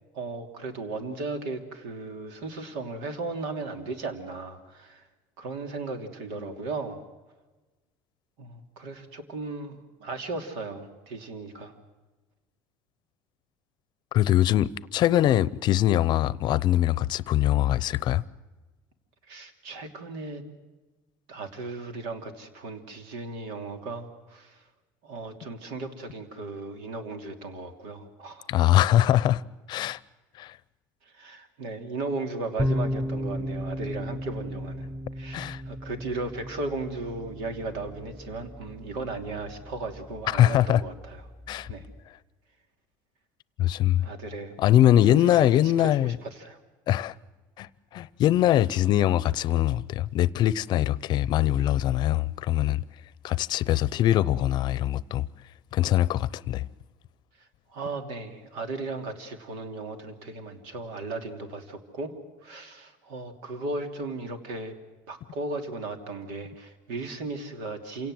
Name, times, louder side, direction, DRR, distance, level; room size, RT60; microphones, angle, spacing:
voice 1, 0.1-5.0 5.4-7.0 8.4-11.7 19.3-20.4 21.3-24.6 25.0-28.5 31.1-34.9 35.2-41.2 41.7-41.9 44.0-44.6 45.1-46.6 57.7-62.2 62.4-64.8 65.1-68.1, right 3 dB, 85° right, 2.9 m, -36 dB
voice 2, 14.1-18.2 28.5-29.4 29.7-30.0 30.4-30.5 35.3-35.6 40.3-40.8 41.5-41.7 43.6-44.0 44.6-46.2 46.9-47.1 47.6-52.8 53.2-55.2 55.7-56.7, left 13 dB, 50° left, 0.7 m, -22 dB
sound 1, 32.6-42.0, equal, 5° right, 1.2 m, -35 dB
27.5 x 17.5 x 7.8 m
cardioid pair, 130°, 10 cm